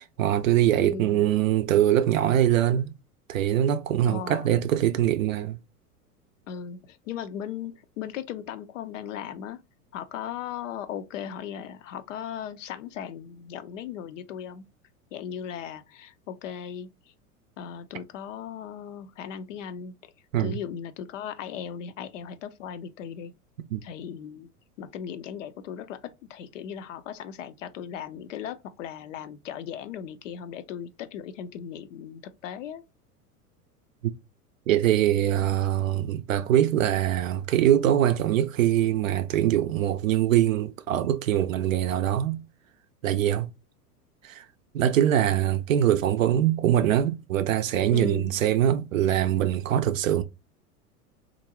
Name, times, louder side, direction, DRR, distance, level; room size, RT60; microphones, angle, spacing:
voice 1, 0.0-2.9 3.3-5.6 20.3-20.6 23.7-23.8 34.7-42.4 43.0-43.5 44.2-44.4 44.7-50.2, right 11 dB, 60° right, 0.5 m, -23 dB
voice 2, 0.8-1.3 4.1-4.6 6.5-9.6 9.9-14.7 15.1-16.9 17.6-20.1 20.4-23.3 23.8-24.5 24.8-32.8 47.9-48.3, left 8 dB, 55° left, 0.5 m, -37 dB
3.5 x 2.5 x 2.9 m
figure-of-eight pair, 85°, 46 cm